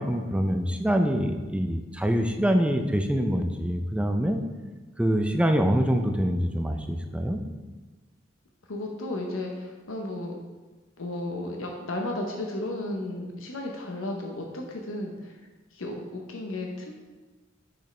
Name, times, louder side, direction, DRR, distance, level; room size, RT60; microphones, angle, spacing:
voice 1, 0.0-4.4 5.0-7.4, equal, 5° right, 5 dB, 0.4 m, -25 dB
voice 2, 8.7-10.3 11.0-15.4 15.7-16.9, left 1 dB, 80° left, 1 dB, 0.7 m, -34 dB
6.4 x 6.1 x 3.2 m, 1.3 s
head